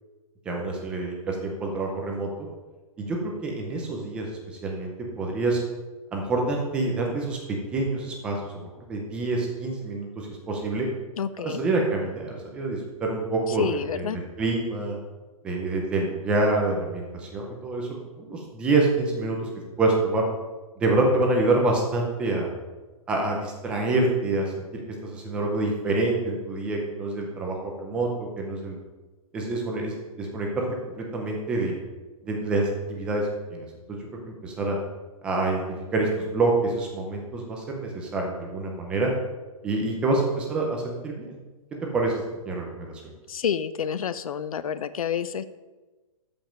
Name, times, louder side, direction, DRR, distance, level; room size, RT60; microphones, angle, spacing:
voice 1, 0.5-2.3 3.0-4.3 4.6-4.9 5.2-5.6 6.1-8.6 8.9-10.9 11.4-15.0 15.4-17.9 18.2-19.5 19.8-20.2 20.8-22.5 23.1-28.8 29.3-30.7 31.0-31.8 32.2-34.0 34.4-34.8 35.2-35.6 35.9-39.1 39.6-41.4 41.9-42.9, right 2 dB, 5° right, 0 dB, 0.5 m, -26 dB
voice 2, 11.2-11.6 13.6-14.2 43.3-45.5, left 8 dB, 75° left, 14 dB, 0.6 m, -29 dB
13.5 x 5.2 x 5.1 m, 1.2 s
hypercardioid pair, 180°, 18 cm